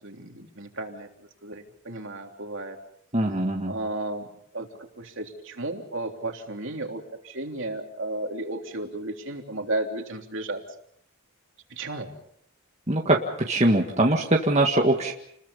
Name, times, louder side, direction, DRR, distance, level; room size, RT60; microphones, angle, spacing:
voice 1, 0.0-2.8 3.7-4.3 4.5-4.7 5.0-10.6 11.7-12.1, right 2 dB, 60° right, 3 dB, 3.3 m, -33 dB
voice 2, 3.1-3.7 12.9-13.2 13.5-15.1, right 1 dB, 30° right, 0 dB, 1.8 m, -22 dB
30.0 x 21.5 x 5.5 m, 0.71 s
head